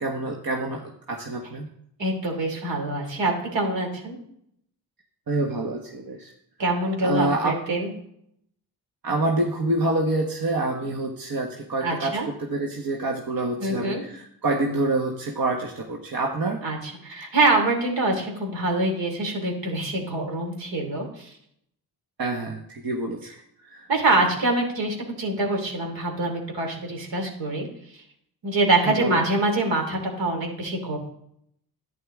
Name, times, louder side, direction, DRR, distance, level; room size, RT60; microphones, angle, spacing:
voice 1, 0.0-1.7 5.3-6.3 7.0-7.6 9.0-16.6 22.2-23.3 23.6-23.9 28.8-29.3, right 2 dB, 45° right, 1 dB, 1.4 m, -27 dB
voice 2, 2.0-4.2 6.6-7.9 11.8-12.3 13.6-14.0 16.6-16.8 17.0-21.3 23.9-27.7 28.4-31.0, right 2 dB, 65° right, 2 dB, 3.1 m, -25 dB
11.0 x 8.9 x 3.7 m, 0.73 s
supercardioid pair, 50°, 48 cm